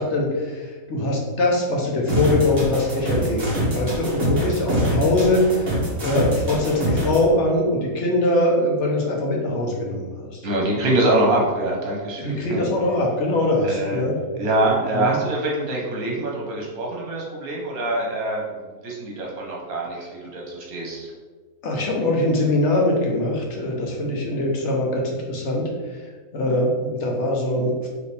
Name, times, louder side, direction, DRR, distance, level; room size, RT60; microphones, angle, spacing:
voice 1, 0.0-10.4 10.8-10.9 12.2-14.2 14.9-15.2 19.9-20.1 21.6-27.9, left 1 dB, 60° left, -1 dB, 0.9 m, -22 dB
sound 1, 2.1-7.2, right 1 dB, 45° right, 1.4 m, -24 dB
voice 2, 10.4-12.6 13.6-14.0 14.3-21.1, right 1 dB, 80° right, -2 dB, 1.5 m, -24 dB
4.9 x 2.7 x 3.3 m, 1.4 s
omnidirectional pair, 1.5 m